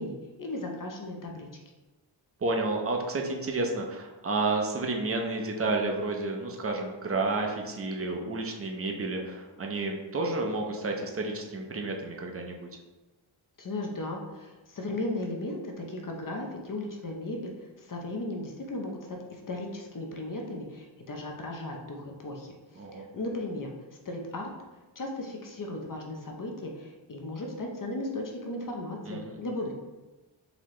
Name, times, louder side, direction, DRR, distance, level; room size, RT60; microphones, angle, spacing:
voice 1, 0.0-1.5 13.6-22.6 22.9-23.7 24.0-24.5 25.0-29.7, left 2 dB, 45° left, 1 dB, 0.6 m, -36 dB
voice 2, 2.4-12.7 22.8-23.1 29.0-29.4, right 3 dB, 30° right, 1 dB, 0.5 m, -31 dB
4.0 x 2.8 x 3.1 m, 1.2 s
wide cardioid pair, 100°, 47 cm